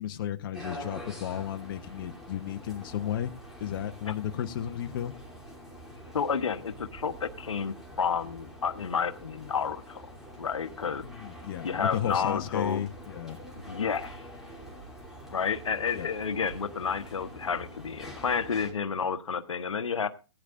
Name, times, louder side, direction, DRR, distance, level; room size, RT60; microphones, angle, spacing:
voice 1, 0.0-3.3 3.6-5.1 11.0-13.4 15.9-16.1, left 10 dB, 45° left, 7 dB, 1.0 m, -33 dB
sound 1, 0.5-18.7, equal, 5° right, 2.9 m, -46 dB
voice 2, 6.1-10.0 10.4-11.0 11.6-12.9 13.6-14.2 15.3-20.1, left 6 dB, 90° left, 9 dB, 1.1 m, -30 dB
18.0 x 10.0 x 2.5 m, 0.31 s
hypercardioid pair, 140°, 16 cm